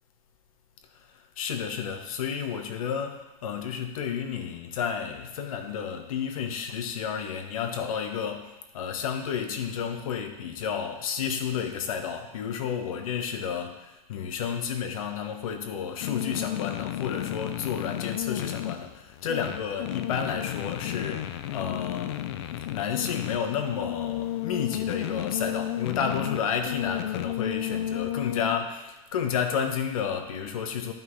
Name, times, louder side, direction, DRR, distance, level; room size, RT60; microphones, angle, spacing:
voice 1, 1.4-22.2 22.7-30.9, left 7 dB, 60° left, 5 dB, 1.2 m, -31 dB
sound 1, 16.0-28.6, left 12 dB, 45° left, 0.4 m, -33 dB
13.0 x 5.4 x 3.2 m, 1.0 s
supercardioid pair, 170°, 20 cm